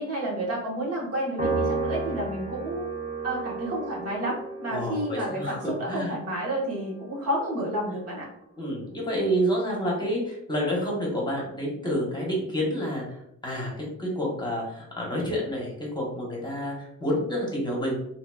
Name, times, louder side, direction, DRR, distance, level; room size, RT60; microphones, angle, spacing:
voice 1, 0.0-2.9 3.2-8.3, right 1 dB, 55° right, -4 dB, 1.1 m, -30 dB
Piano, 1.4-8.0, right 3 dB, 25° right, 1.2 m, -34 dB
voice 2, 4.7-6.1 8.6-17.9, equal, 15° left, -3 dB, 1.0 m, -29 dB
2.9 x 2.8 x 2.2 m, 0.77 s
cardioid pair, 90°, 30 cm